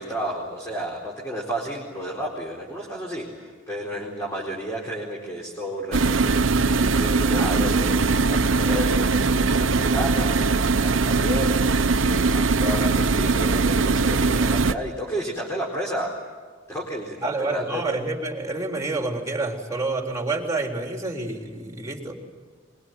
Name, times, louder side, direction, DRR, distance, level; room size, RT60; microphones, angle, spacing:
voice 1, 0.0-6.1 6.7-11.5 11.9-16.2 16.7-18.0, equal, 15° left, -4 dB, 4.2 m, -32 dB
sound 1, 5.9-14.7, right 4 dB, 85° right, 0.9 m, -21 dB
voice 2, 17.2-22.2, right 3 dB, 15° right, 2 dB, 3.7 m, -28 dB
23.5 x 23.0 x 9.4 m, 1.5 s
head